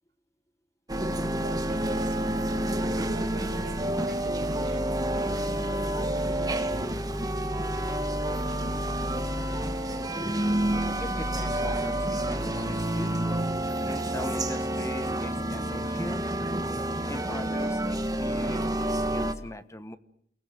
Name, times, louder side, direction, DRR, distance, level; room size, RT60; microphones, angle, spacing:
sound 1, 0.9-19.3, right 1 dB, 20° right, 1.7 m, -29 dB
voice 1, 1.4-2.4 3.0-6.9, right 2 dB, 60° right, 2.8 m, -44 dB
voice 2, 11.0-13.2 13.8-16.3 17.1-20.0, left 1 dB, 15° left, 1.1 m, -40 dB
29.5 x 19.5 x 7.6 m
head